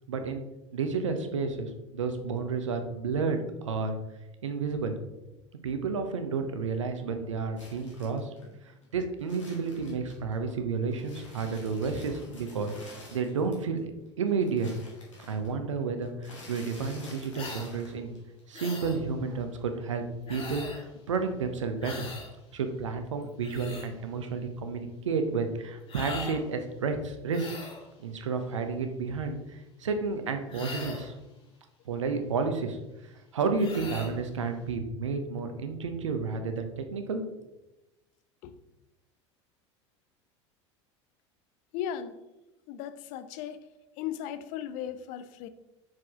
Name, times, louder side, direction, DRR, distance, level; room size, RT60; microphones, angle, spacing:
voice 1, 0.1-0.4 0.7-4.0 4.4-4.9 5.6-8.3 8.9-14.7 15.2-18.1 18.5-20.0 20.3-22.1 22.5-27.5 28.0-31.1 31.9-32.8 33.3-37.2, right 4 dB, 80° right, 7 dB, 0.8 m, -31 dB
sound 1, 7.6-10.5 10.9-13.8 14.0-18.4 18.7-19.6, left 2 dB, 80° left, 1.8 m, -50 dB
sound 2, 17.3-17.7 18.5-19.0 20.3-20.9 21.8-22.3 23.2-23.9 25.9-26.4 27.3-27.8 30.5-31.1 33.6-34.1, left 3 dB, 35° left, 1.8 m, -40 dB
voice 2, 41.7-42.2 42.7-43.7 44.0-45.5, left 9 dB, 55° left, 11 dB, 0.5 m, -36 dB
6.0 x 4.8 x 3.6 m, 0.99 s
figure-of-eight pair, 75°, 16 cm